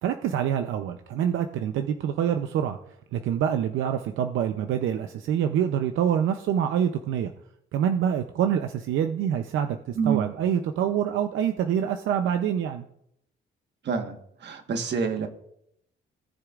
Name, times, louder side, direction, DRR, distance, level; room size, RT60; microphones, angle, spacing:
voice 1, 0.0-2.8 3.1-7.3 7.7-12.8, right 9 dB, 80° right, 7 dB, 0.6 m, -26 dB
voice 2, 13.8-15.3, right 6 dB, 60° right, 6 dB, 1.4 m, -27 dB
17.5 x 6.7 x 2.5 m, 0.74 s
cardioid pair, 90°, 20 cm